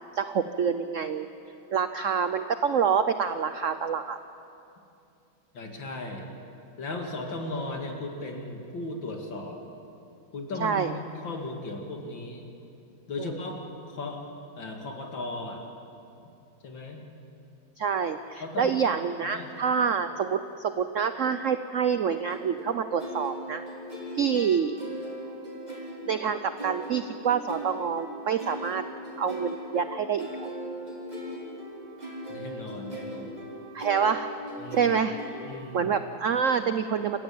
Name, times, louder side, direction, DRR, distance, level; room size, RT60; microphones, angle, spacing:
voice 1, 0.1-1.3 1.7-4.2 10.6-10.9 13.2-13.3 17.8-23.6 24.1-24.8 26.1-28.8 29.2-30.5 33.7-34.3 34.7-37.2, right 6 dB, 70° right, 10 dB, 0.7 m, -27 dB
voice 2, 5.5-6.3 6.8-9.6 10.3-12.5 13.1-13.6 13.9-14.2 14.6-15.7 16.6-17.1 18.4-18.7 19.3-19.5 32.3-33.4 34.6-34.9 35.4-35.9, left 2 dB, 65° left, 2 dB, 3.1 m, -36 dB
sound 1, 22.2-35.9, right 1 dB, 20° right, 4.5 m, -39 dB
29.0 x 15.0 x 8.7 m, 2.7 s
omnidirectional pair, 2.2 m